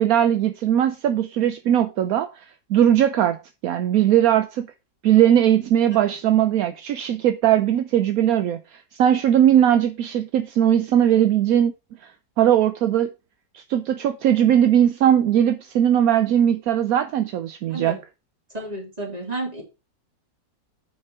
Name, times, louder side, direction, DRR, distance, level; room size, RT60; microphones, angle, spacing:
voice 1, 0.0-2.3 2.7-3.4 3.6-4.7 5.0-11.7 12.4-13.1 13.5-18.0, right 10 dB, 70° right, 0.9 m, -19 dB
voice 2, 18.5-19.6, right 2 dB, 20° right, 3.4 m, -32 dB
6.9 x 5.4 x 4.8 m
omnidirectional pair, 2.0 m